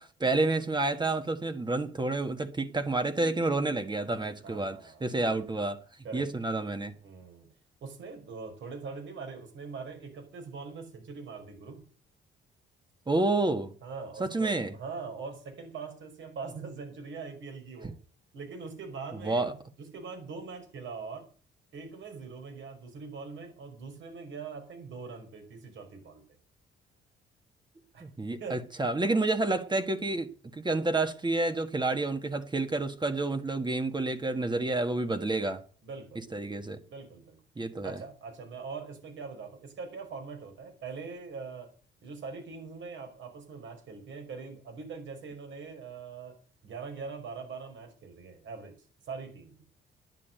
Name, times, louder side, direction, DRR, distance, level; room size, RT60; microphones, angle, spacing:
voice 1, 0.0-5.8 6.1-6.9 13.1-13.7 14.2-14.7 19.2-19.5 28.0-35.6 36.3-36.8 37.6-38.0, right 2 dB, 20° right, 1.5 m, -29 dB
voice 2, 4.4-5.4 6.0-6.3 7.0-7.5 7.8-11.9 13.8-17.9 18.3-21.2 21.7-26.2 27.9-28.0 28.4-28.6 35.8-36.2 36.8-37.4 37.8-41.7 42.0-46.4 46.6-48.8 49.1-49.5, right 4 dB, 70° right, 5.5 m, -42 dB
10.5 x 8.6 x 9.1 m
cardioid pair, 90°, 20 cm